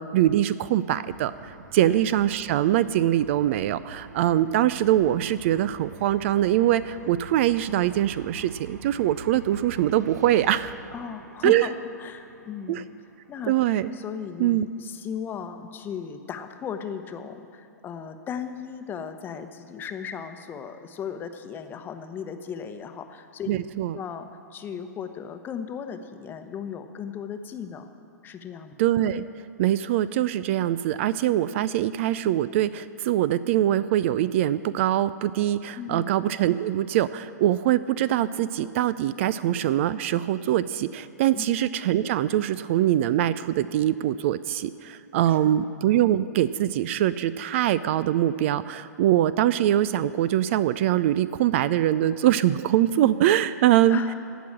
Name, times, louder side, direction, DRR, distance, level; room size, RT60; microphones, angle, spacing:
voice 1, 0.0-10.7 11.4-11.7 12.7-12.8 13.5-13.9 14.4-14.7 23.5-24.0 28.8-29.2 29.6-54.0, right 12 dB, 45° right, 16 dB, 0.4 m, -23 dB
sound 1, 1.0-13.7, right 4 dB, 70° right, 0.9 m, -46 dB
voice 2, 10.9-12.9 13.3-13.5 13.9-23.7 23.9-27.9 28.2-28.7 35.7-36.1 41.3-41.5 45.2-45.5 53.9-54.1, left 7 dB, 20° left, 8 dB, 0.9 m, -36 dB
16.5 x 6.1 x 8.8 m, 2.6 s
figure-of-eight pair, 110°, 9 cm